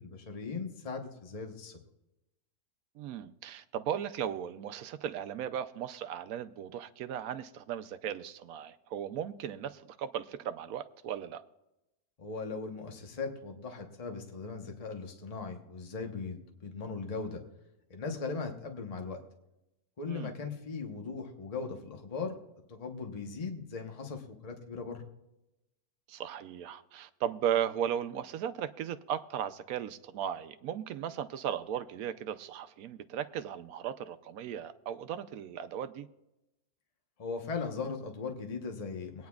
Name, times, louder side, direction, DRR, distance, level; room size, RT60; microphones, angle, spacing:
voice 1, 0.0-1.8 12.2-17.4 17.9-19.2 20.0-22.3 22.7-25.0 37.2-39.3, left 4 dB, 30° left, 1.0 m, -38 dB
voice 2, 3.0-11.4 20.1-20.3 26.1-36.1, right 9 dB, 75° right, 1.0 m, -36 dB
23.0 x 9.4 x 2.3 m
omnidirectional pair, 1.6 m